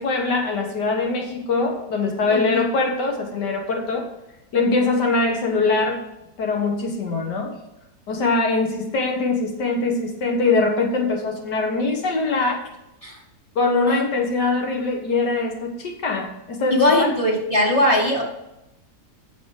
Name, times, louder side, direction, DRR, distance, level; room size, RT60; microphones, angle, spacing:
voice 1, 0.0-4.1 4.5-6.0 6.4-7.5 8.1-12.6 13.6-17.1, left 3 dB, 85° left, 2 dB, 2.1 m, -22 dB
voice 2, 2.3-2.7 13.0-13.2 13.9-14.0 16.7-18.2, left 1 dB, 20° left, 0 dB, 2.1 m, -20 dB
9.2 x 7.1 x 4.9 m, 0.89 s
omnidirectional pair, 1.8 m